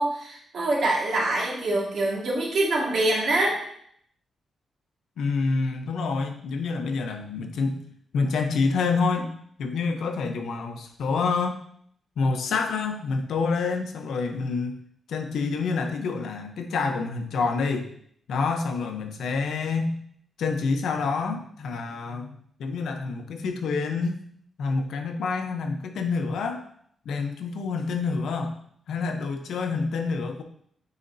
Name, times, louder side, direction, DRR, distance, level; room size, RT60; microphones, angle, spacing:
voice 1, 0.0-3.6, right 2 dB, 60° right, -3 dB, 1.9 m, -25 dB
voice 2, 5.2-7.8 8.1-9.3 9.6-11.6 12.2-14.8 15.1-17.9 18.3-20.0 20.4-24.2 24.6-26.6 27.0-28.6 28.9-30.4, left 4 dB, 85° left, 5 dB, 0.8 m, -27 dB
9.7 x 4.2 x 2.7 m, 0.66 s
wide cardioid pair, 165°, 0 cm